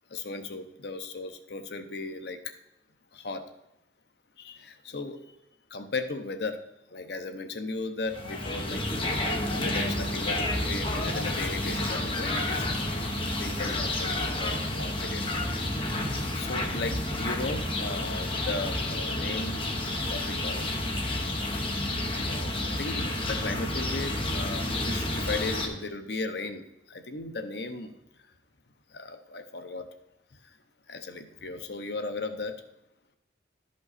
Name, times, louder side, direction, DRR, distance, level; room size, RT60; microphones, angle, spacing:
voice 1, 0.1-2.5 3.1-3.4 4.4-5.2 5.7-6.6 6.9-8.8 9.5-12.6 13.4-15.2 15.5-15.8 16.3-19.6 20.1-20.7 22.2-22.5 22.8-27.9 28.9-29.9 30.9-32.6, left 3 dB, 65° left, 8 dB, 0.7 m, -36 dB
sound 1, 8.1-25.7, left 1 dB, 30° left, 1.1 m, -30 dB
11.5 x 5.3 x 4.1 m, 0.91 s
head